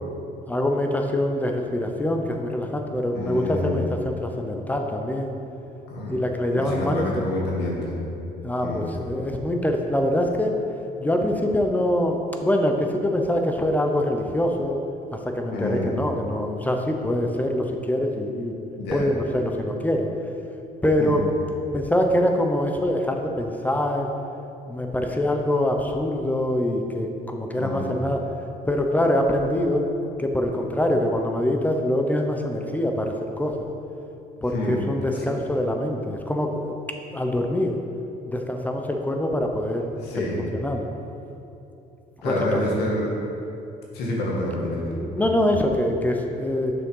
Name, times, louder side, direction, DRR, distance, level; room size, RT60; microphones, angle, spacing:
voice 1, 0.5-5.3 6.1-7.3 8.4-10.5 11.0-14.8 15.1-18.6 18.9-20.1 20.8-21.2 21.7-24.1 24.7-28.2 28.7-29.9 30.2-33.5 34.4-36.7 37.1-37.8 38.3-39.9 40.2-40.9 42.2-42.6 45.0-46.7, left 1 dB, 10° left, 3 dB, 0.8 m, -24 dB
voice 2, 3.1-3.8 5.9-6.1 6.5-8.0 8.6-8.8 15.5-15.9 18.8-19.0 21.0-21.2 27.5-28.0 34.5-34.9 35.1-35.3 40.0-40.5 42.2-43.1 43.9-44.9, left 1 dB, 80° left, -3 dB, 2.0 m, -28 dB
7.4 x 6.3 x 5.6 m, 2.8 s
cardioid pair, 110°, 17 cm